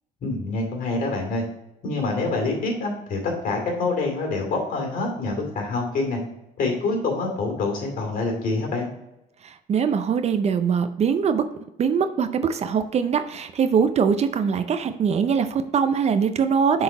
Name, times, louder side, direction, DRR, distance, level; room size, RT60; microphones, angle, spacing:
voice 1, 0.2-1.4 1.8-6.2 6.6-8.9, left 3 dB, 55° left, 2 dB, 2.5 m, -26 dB
voice 2, 9.4-11.4 11.8-16.8, right 6 dB, 40° right, 10 dB, 0.5 m, -22 dB
6.8 x 3.9 x 4.8 m, 0.88 s
cardioid pair, 110°, 17 cm